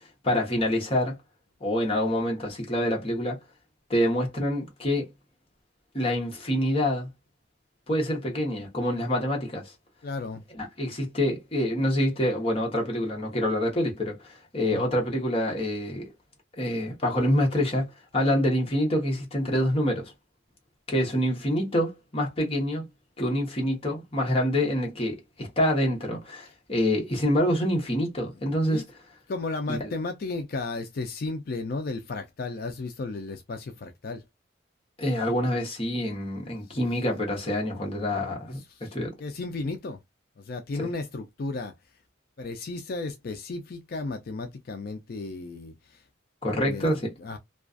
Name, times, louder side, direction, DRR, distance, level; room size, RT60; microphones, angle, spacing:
voice 1, 0.2-1.2 1.6-3.4 3.9-5.1 5.9-7.1 7.9-9.7 10.6-16.1 16.6-20.1 20.9-22.8 23.2-28.8 29.7-29.9 35.0-38.6 38.9-39.1 46.4-47.1, equal, 30° left, 0.9 m, -26 dB
voice 2, 10.0-10.4 14.6-14.9 28.7-28.8 29.3-34.2 36.6-36.9 38.5-38.9 39.2-40.0 40.4-41.7 42.4-46.0 46.5-47.4, left 3 dB, 50° left, 0.4 m, -34 dB
2.4 x 2.3 x 2.4 m
head